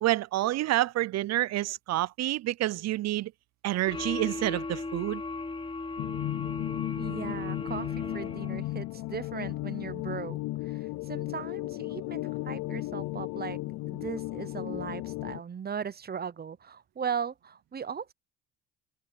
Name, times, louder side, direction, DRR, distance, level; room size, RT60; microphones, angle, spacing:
voice 1, 0.0-3.3 3.6-5.2, right 15 dB, 60° right, 0.4 m, -28 dB
sound 1, 3.9-8.7, left 3 dB, 15° left, 1.2 m, -37 dB
sound 2, 6.0-15.4, left 18 dB, 80° left, 0.5 m, -35 dB
voice 2, 7.0-10.4 10.6-13.6 13.9-18.1, right 7 dB, 30° right, 0.7 m, -38 dB
cardioid pair, 90°, 30 cm